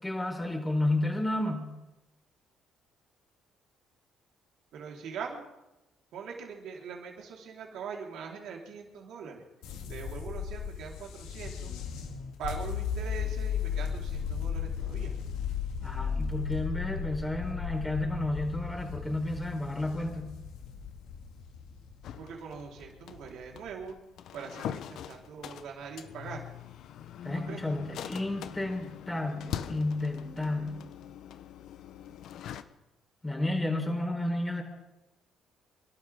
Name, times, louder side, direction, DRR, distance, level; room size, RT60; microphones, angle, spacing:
voice 1, 0.0-1.7 15.8-20.3 27.2-30.8 33.2-34.6, left 2 dB, 10° left, 2 dB, 4.4 m, -31 dB
voice 2, 4.7-5.4 6.1-9.4 9.9-11.7 12.4-15.2 16.0-16.1 22.2-23.9 24.3-26.4 27.3-27.8, right 6 dB, 75° right, -1 dB, 4.3 m, -42 dB
sound 1, 9.6-23.8, left 7 dB, 90° left, 2.1 m, -36 dB
sound 2, 22.0-32.6, left 9 dB, 70° left, 0.9 m, -42 dB
28.0 x 12.0 x 3.8 m, 0.97 s
cardioid pair, 80°, 0 cm